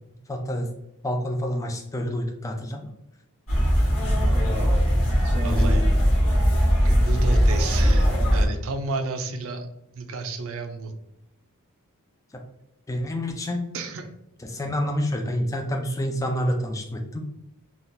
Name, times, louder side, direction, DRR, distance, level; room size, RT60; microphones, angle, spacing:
voice 1, 0.3-0.7 1.0-2.9 12.9-13.6 14.4-17.2, equal, 15° left, 3 dB, 0.4 m, -28 dB
sound 1, 3.5-8.4, equal, 65° left, 1.3 m, -20 dB
voice 2, 5.4-5.8 6.8-9.7 9.9-10.9 13.7-14.1, right 3 dB, 65° right, 7 dB, 0.4 m, -32 dB
3.6 x 2.3 x 2.6 m, 0.85 s
head